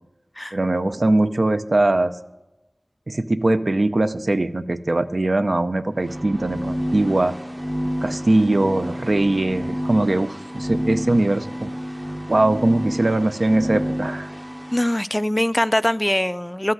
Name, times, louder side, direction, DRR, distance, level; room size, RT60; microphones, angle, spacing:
voice 1, 0.5-2.1 3.1-7.3 8.0-11.7 12.3-14.3, right 2 dB, 65° right, 0.6 m, -21 dB
sound 1, 5.9-15.0, equal, 20° right, 0.7 m, -30 dB
voice 2, 14.7-16.7, left 1 dB, 15° left, 0.3 m, -22 dB
13.0 x 5.7 x 7.7 m
wide cardioid pair, 45°, 0 cm